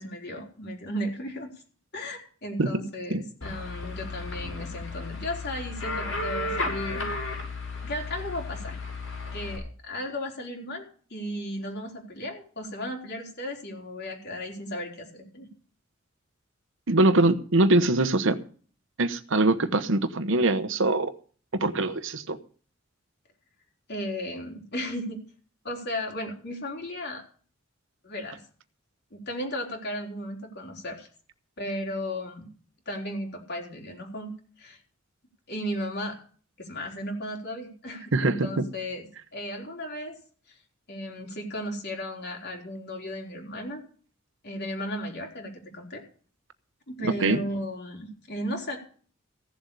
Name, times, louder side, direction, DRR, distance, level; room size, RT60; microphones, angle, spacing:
voice 1, 0.0-1.5 1.9-7.1 7.8-8.8 9.3-15.5 23.9-25.2 25.6-27.2 28.0-28.4 29.1-31.1 31.6-32.5 32.9-34.3 34.6-34.8 35.5-36.2 36.6-39.1 39.3-40.2 40.9-43.8 44.4-46.0 46.9-48.8, equal, 55° left, 1 dB, 3.9 m, -35 dB
sound 1, 3.4-9.6, left 3 dB, 85° left, 6.6 m, -33 dB
voice 2, 16.9-18.4 19.0-21.1 21.5-22.4 38.1-38.7 47.0-47.4, right 2 dB, 70° right, 12 dB, 1.0 m, -23 dB
16.0 x 7.4 x 6.9 m, 0.43 s
head